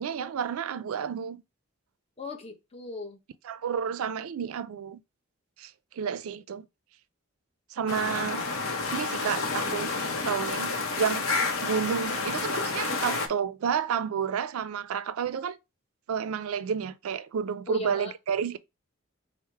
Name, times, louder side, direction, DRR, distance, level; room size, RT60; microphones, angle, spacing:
voice 1, 0.0-1.4 3.4-5.0 5.6-5.7 6.0-6.7 7.7-8.5 8.9-9.9 10.2-11.3 11.6-15.6 16.1-18.6, right 7 dB, 85° right, 0.4 m, -30 dB
voice 2, 2.2-3.2 17.7-18.1, left 2 dB, 30° left, 0.7 m, -38 dB
sound 1, 7.9-13.3, left 3 dB, 75° left, 0.7 m, -30 dB
4.4 x 2.0 x 4.6 m
head